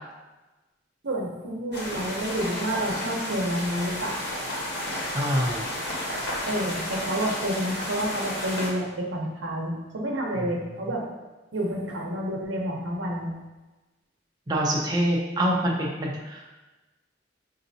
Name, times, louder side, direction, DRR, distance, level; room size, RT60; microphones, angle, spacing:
voice 1, 1.0-4.2 6.5-11.1 11.5-13.3, right 1 dB, 85° right, -2 dB, 0.8 m, -29 dB
sound 1, 1.7-8.7, left 1 dB, 60° left, 1.3 m, -32 dB
voice 2, 5.1-5.7 14.5-16.4, equal, 20° right, -3 dB, 0.5 m, -25 dB
5.1 x 2.7 x 2.7 m, 1.1 s
head